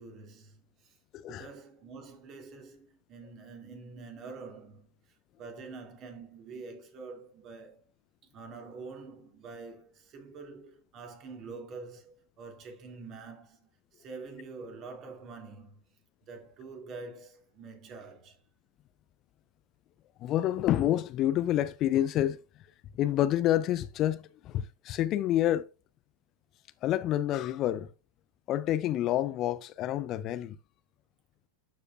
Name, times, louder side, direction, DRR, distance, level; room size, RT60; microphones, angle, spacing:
voice 1, 0.0-1.0 1.3-7.8 8.3-15.8 16.2-18.4, right 4 dB, 35° right, 2.2 m, -46 dB
voice 2, 1.1-1.5 20.2-22.4 22.9-25.7 26.8-27.9 28.5-30.6, left 12 dB, 35° left, 0.3 m, -28 dB
12.5 x 5.0 x 2.3 m
figure-of-eight pair, 90°, 0 cm